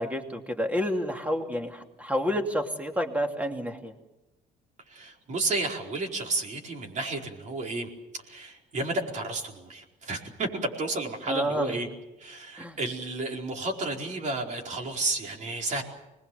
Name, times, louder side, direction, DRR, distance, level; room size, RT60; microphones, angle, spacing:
voice 1, 0.0-3.9 11.3-11.8 12.6-12.8, equal, 10° right, 4 dB, 2.8 m, -29 dB
voice 2, 4.9-7.9 8.2-11.9 12.2-15.8, right 2 dB, 45° right, 1 dB, 4.6 m, -32 dB
25.5 x 21.0 x 7.1 m, 0.97 s
cardioid pair, 110°, 17 cm